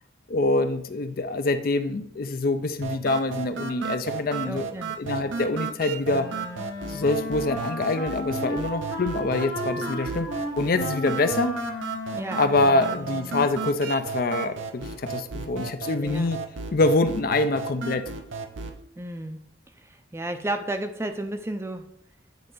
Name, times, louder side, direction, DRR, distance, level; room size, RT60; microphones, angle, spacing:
voice 1, 0.3-4.7 5.0-6.3 6.9-10.3 10.6-11.5 12.4-16.4 16.7-18.0, left 2 dB, 50° left, 9 dB, 0.5 m, -25 dB
sound 1, 2.8-18.8, right 5 dB, 90° right, 0.6 m, -34 dB
voice 2, 4.4-4.9 12.1-12.4 16.0-16.3 19.0-19.4 19.8-21.9, right 1 dB, 15° right, 7 dB, 0.4 m, -32 dB
Wind instrument woodwind instrument, 6.1-13.6, left 1 dB, 85° left, 1.5 m, -34 dB
8.8 x 3.6 x 3.9 m, 0.71 s
head